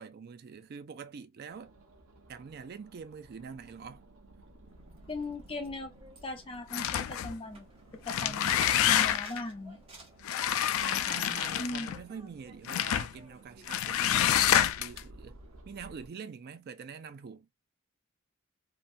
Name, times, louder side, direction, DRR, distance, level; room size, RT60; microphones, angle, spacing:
voice 1, 0.0-1.7 2.3-4.0 8.1-8.6 10.8-15.4 15.7-17.5, right 6 dB, 50° right, 0.3 m, -45 dB
sound 1, 1.5-16.1, right 2 dB, 75° right, 0.8 m, -56 dB
sound 2, 4.7-15.6, right 2 dB, 25° right, 0.9 m, -54 dB
voice 2, 5.1-5.9 6.2-7.7 8.1-8.5 8.9-9.8 11.6-11.9, left 2 dB, 25° left, 0.6 m, -38 dB
sound 3, 6.7-7.3 7.9-9.4 10.2-12.0 12.7-13.1 13.7-15.0, left 10 dB, 70° left, 0.3 m, -27 dB
2.9 x 2.2 x 2.5 m
head